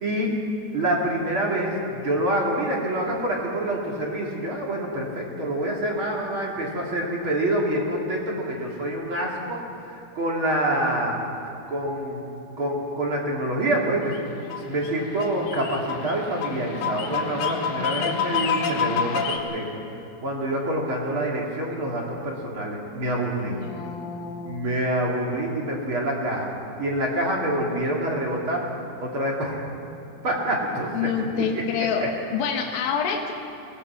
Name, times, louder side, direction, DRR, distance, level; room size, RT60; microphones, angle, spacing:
voice 1, 0.0-0.3 0.7-9.6 9.8-11.2 11.7-12.3 12.6-14.1 14.6-19.7 20.2-23.5 24.4-26.5 26.8-28.7 29.0-29.6 30.2-31.5 31.8-32.1, right 1 dB, 35° right, -2 dB, 3.1 m, -26 dB
sound 1, 14.1-19.4, left 7 dB, 85° left, 3.5 m, -28 dB
voice 2, 23.5-24.7 30.9-32.1 32.3-33.3, left 7 dB, 70° left, 2 dB, 3.1 m, -27 dB
26.0 x 19.0 x 5.9 m, 2.7 s
omnidirectional pair, 4.4 m